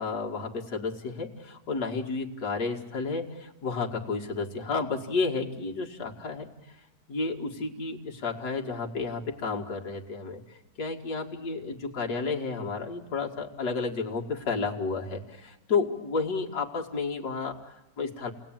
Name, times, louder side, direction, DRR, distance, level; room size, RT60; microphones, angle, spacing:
voice 1, 0.0-6.8 7.1-18.3, left 4 dB, 60° left, 0 dB, 2.5 m, -32 dB
28.5 x 20.0 x 9.0 m, 1.0 s
omnidirectional pair, 2.0 m